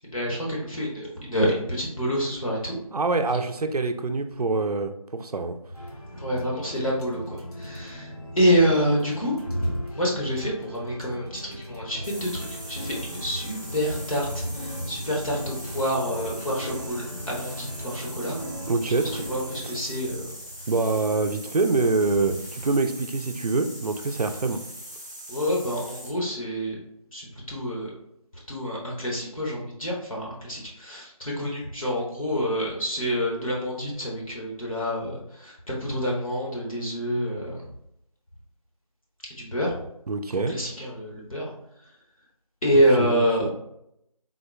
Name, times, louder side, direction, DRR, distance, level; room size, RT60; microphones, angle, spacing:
voice 1, 0.1-2.8 6.1-8.1 8.4-18.4 19.0-20.3 25.3-26.8 27.1-27.9 28.5-37.6 39.4-39.8 40.5-41.5 42.6-43.5, equal, 65° left, -4 dB, 0.9 m, -27 dB
voice 2, 2.9-5.6 18.7-19.3 19.6-19.7 20.7-24.6 40.1-40.5 43.0-43.5, right 3 dB, 85° right, 7 dB, 0.4 m, -25 dB
sound 1, 5.7-21.0, equal, 90° left, 1.1 m, -39 dB
sound 2, 11.9-19.6, left 1 dB, 35° left, 0.6 m, -43 dB
sound 3, 12.0-26.2, equal, 30° right, 0.6 m, -41 dB
3.7 x 2.4 x 2.2 m, 0.77 s
figure-of-eight pair, 175°, 19 cm